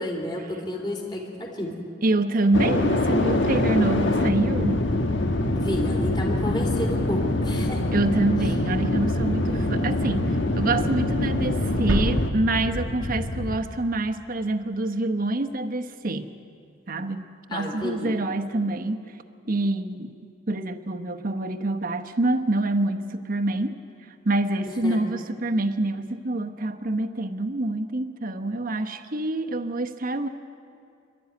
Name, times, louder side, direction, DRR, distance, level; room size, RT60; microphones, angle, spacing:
voice 1, 0.0-1.7 5.5-7.9 17.5-18.1 24.8-25.0, left 1 dB, 25° left, 0 dB, 3.1 m, -30 dB
voice 2, 2.0-4.8 7.9-10.2 10.6-16.3 16.9-19.0 19.5-20.1 20.5-23.8 24.2-30.3, right 2 dB, 50° right, 5 dB, 1.0 m, -26 dB
sound 1, 2.5-13.6, left 1 dB, 75° left, 1.3 m, -24 dB
sound 2, 11.9-14.6, right 1 dB, 85° right, 1.3 m, -30 dB
27.5 x 12.0 x 9.4 m, 2.5 s
head